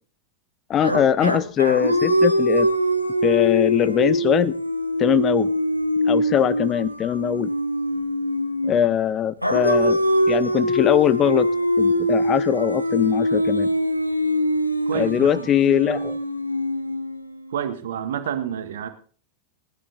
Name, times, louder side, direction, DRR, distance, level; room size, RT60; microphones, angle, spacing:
voice 1, 0.7-2.7 3.2-4.5 5.0-5.5 6.1-7.5 8.6-10.0 10.3-11.5 11.8-13.7 14.9-16.2, left 9 dB, 30° left, 17 dB, 0.7 m, -21 dB
sound 1, 0.8-8.9 9.4-17.5, left 1 dB, 90° left, 1.3 m, -23 dB
voice 2, 14.9-15.5 17.5-18.9, right 9 dB, 60° right, 9 dB, 1.8 m, -29 dB
19.5 x 10.5 x 4.0 m, 0.40 s
figure-of-eight pair, 90°, 0 cm